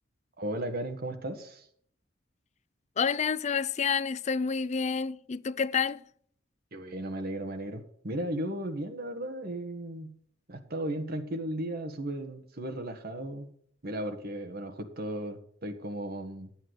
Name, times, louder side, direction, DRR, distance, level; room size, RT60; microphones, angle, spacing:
voice 1, 0.4-1.6 6.7-10.2 10.5-13.5 13.8-16.5, right 1 dB, 55° right, 1.6 m, -35 dB
voice 2, 3.0-6.0, left 6 dB, 35° left, 0.4 m, -29 dB
11.0 x 8.9 x 4.9 m
head